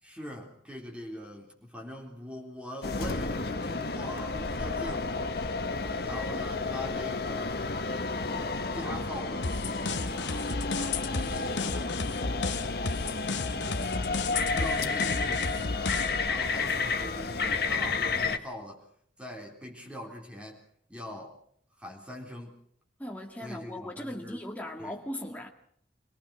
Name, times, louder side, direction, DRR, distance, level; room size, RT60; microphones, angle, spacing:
voice 1, 0.0-5.3 6.0-7.6 8.2-12.1 13.5-13.8 14.4-18.8 19.2-20.6 20.9-21.4 21.8-22.6 23.4-24.4 24.8-25.0, equal, 5° right, 0 dB, 3.9 m, -42 dB
sound 1, 2.8-18.4, left 3 dB, 60° left, 1.4 m, -31 dB
sound 2, 9.4-16.3, left 4 dB, 90° left, 1.1 m, -34 dB
voice 2, 23.0-25.5, left 1 dB, 10° left, 1 dB, 2.2 m, -38 dB
24.0 x 18.5 x 6.3 m, 0.62 s
head